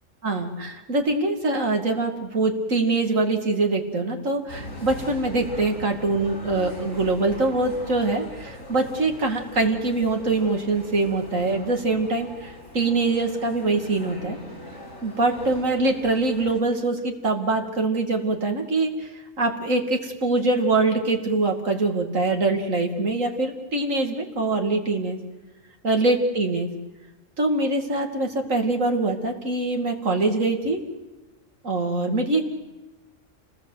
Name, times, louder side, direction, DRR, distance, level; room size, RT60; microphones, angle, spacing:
voice 1, 0.2-14.4 15.0-19.1 19.4-25.2 25.8-26.7 27.4-30.8 31.6-32.4, right 2 dB, 85° right, 3 dB, 2.9 m, -24 dB
sound 1, 4.5-16.6, left 1 dB, 80° left, 6.0 m, -41 dB
28.0 x 19.5 x 8.1 m, 1.1 s
omnidirectional pair, 1.3 m